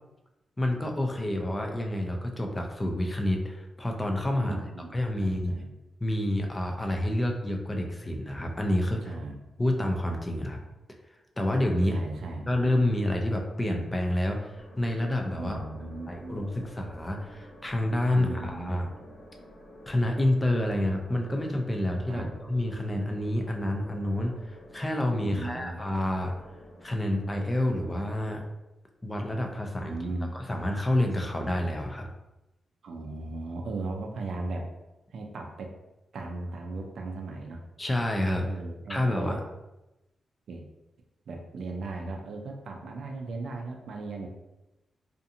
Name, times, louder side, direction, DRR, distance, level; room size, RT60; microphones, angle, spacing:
voice 1, 0.6-4.6 4.9-5.6 6.0-9.1 9.6-10.6 11.4-12.0 12.5-15.6 16.1-18.9 19.9-26.3 26.8-28.4 29.0-30.0 30.3-32.1 37.8-38.5 38.9-39.4, left 1 dB, 15° left, 2 dB, 0.4 m, -28 dB
voice 2, 4.4-5.7 9.1-9.4 11.9-12.6 15.4-16.4 18.1-18.8 22.1-22.3 25.2-25.8 29.8-30.3 32.8-34.7 35.1-35.7 36.1-37.6 38.4-39.4 40.5-40.7 41.3-44.3, right 2 dB, 70° right, 2 dB, 0.4 m, -37 dB
sound 1, 14.5-28.3, equal, 65° left, 1.1 m, -50 dB
2.5 x 2.4 x 2.7 m, 0.97 s
wide cardioid pair, 150°, 0 cm